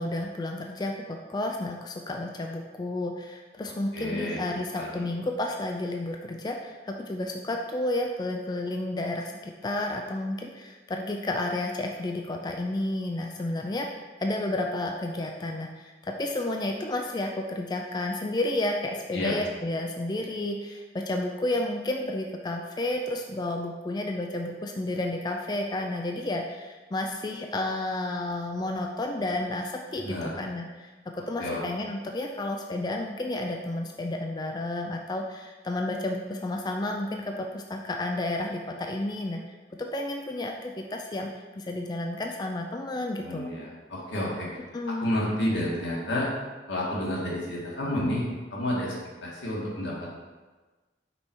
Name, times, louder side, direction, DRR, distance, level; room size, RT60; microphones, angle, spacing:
voice 1, 0.0-39.4 39.8-41.3 41.6-43.5 44.7-45.1, left 1 dB, 20° left, 2 dB, 0.3 m, -31 dB
voice 2, 3.9-4.4 4.8-5.1 19.1-19.4 30.0-30.3 31.4-31.6 43.2-44.5 45.0-46.3 46.7-48.9 49.2-50.1, left 1 dB, 85° left, -5 dB, 1.8 m, -30 dB
5.3 x 4.3 x 4.5 m, 1.3 s
head